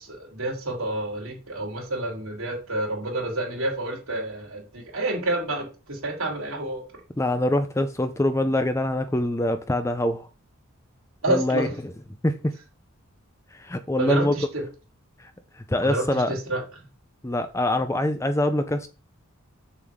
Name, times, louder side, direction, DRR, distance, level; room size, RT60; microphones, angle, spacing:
voice 1, 0.0-6.8 11.2-11.7 14.0-14.6 15.8-16.6, right 2 dB, 70° right, 3.5 m, -29 dB
voice 2, 7.2-10.3 11.3-11.9 12.2-12.5 13.5-14.3 15.2-16.3 17.2-18.9, left 1 dB, 15° left, 0.5 m, -24 dB
7.0 x 6.9 x 3.6 m
head